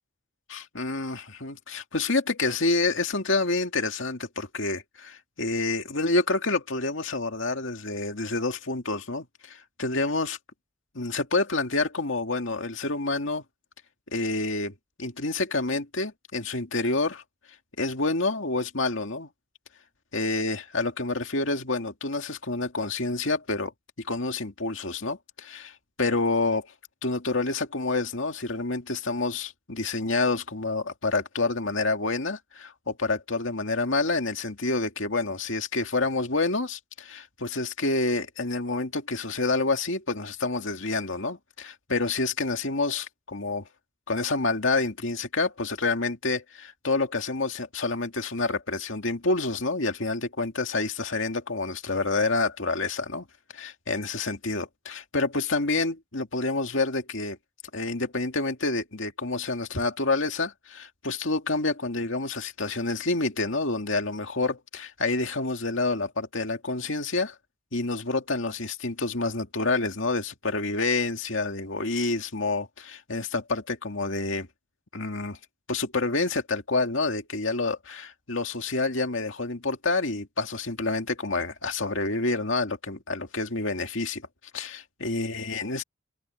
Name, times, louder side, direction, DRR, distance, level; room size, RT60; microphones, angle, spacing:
voice 1, 0.5-10.4 10.9-13.4 14.1-17.2 17.8-19.3 20.1-23.7 24.0-26.7 27.0-43.6 44.1-53.3 53.5-57.4 57.7-67.3 67.7-74.5 74.9-75.4 75.7-84.2 84.5-85.8, left 3 dB, 65° left, 2.4 m, -28 dB
head